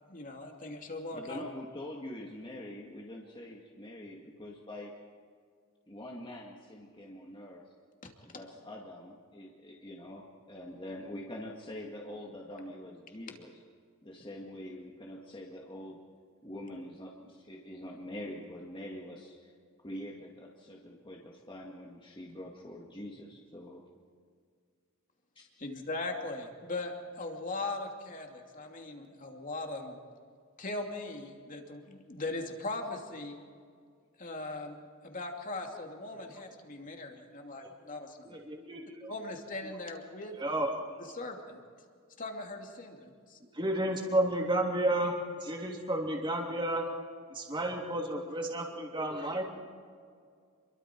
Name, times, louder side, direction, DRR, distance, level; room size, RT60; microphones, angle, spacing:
voice 1, 0.1-1.4 8.0-8.1 25.6-30.0 30.6-33.4 34.2-38.3 39.1-40.4 41.1-41.6 42.2-43.4, left 2 dB, 40° left, 2 dB, 2.7 m, -39 dB
voice 2, 1.1-4.9 5.9-7.6 8.3-13.5 14.0-16.0 16.4-19.5 19.8-23.8 25.4-25.5, left 1 dB, 25° left, -1 dB, 2.0 m, -45 dB
voice 3, 38.2-39.1 40.4-40.7 43.4-46.9 47.3-49.4, right 1 dB, 25° right, 0 dB, 3.1 m, -32 dB
28.5 x 23.0 x 4.6 m, 2.1 s
head